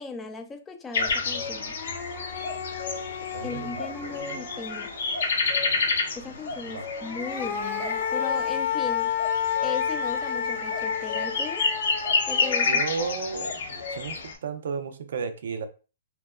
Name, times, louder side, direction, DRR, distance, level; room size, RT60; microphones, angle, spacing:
voice 1, 0.0-1.8 3.4-4.9 5.7-9.1 9.6-11.7 12.3-12.8, left 4 dB, 15° left, 0.4 m, -37 dB
sound 1, 0.9-14.3, left 4 dB, 70° left, 0.8 m, -30 dB
sound 2, 1.1-1.2 1.5-5.2 6.8-14.1, left 8 dB, 35° left, 0.8 m, -31 dB
voice 2, 3.3-3.7 4.0-4.4 6.7-6.8 12.7-13.5 13.9-14.1 14.4-15.7, right 5 dB, 70° right, 0.4 m, -33 dB
2.7 x 2.1 x 2.2 m
hypercardioid pair, 135°, 0 cm